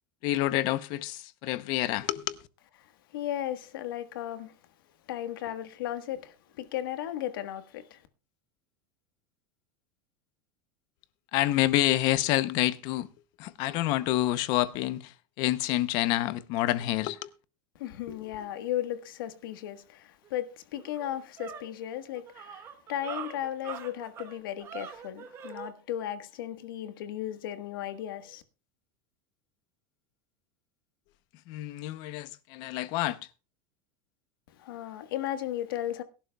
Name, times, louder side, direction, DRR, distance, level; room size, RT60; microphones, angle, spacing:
voice 1, 0.2-2.4 11.3-13.1 13.4-15.1 15.4-17.3 31.5-33.2, left 15 dB, 40° left, 0.7 m, -28 dB
voice 2, 2.8-4.5 5.1-8.0 17.8-28.4 34.6-36.0, left 12 dB, 90° left, 1.4 m, -35 dB
sound 1, 20.3-20.4 20.7-25.7, right 8 dB, 25° right, 1.7 m, -43 dB
22.5 x 11.5 x 2.3 m
supercardioid pair, 175°, 11 cm